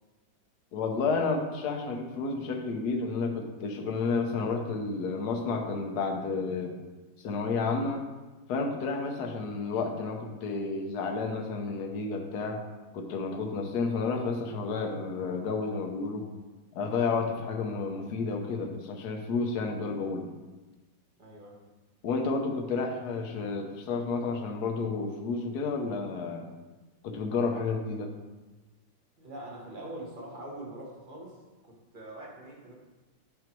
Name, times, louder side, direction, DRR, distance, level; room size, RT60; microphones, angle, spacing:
voice 1, 0.7-6.7 7.2-8.0 8.5-12.6 12.9-16.3 16.7-20.3 22.0-26.5 27.0-28.1, left 4 dB, 60° left, 3 dB, 1.4 m, -31 dB
voice 2, 21.2-21.6 29.2-31.4 31.6-32.7, right 1 dB, 30° right, -2 dB, 1.4 m, -43 dB
8.7 x 4.7 x 4.6 m, 1.2 s
omnidirectional pair, 2.1 m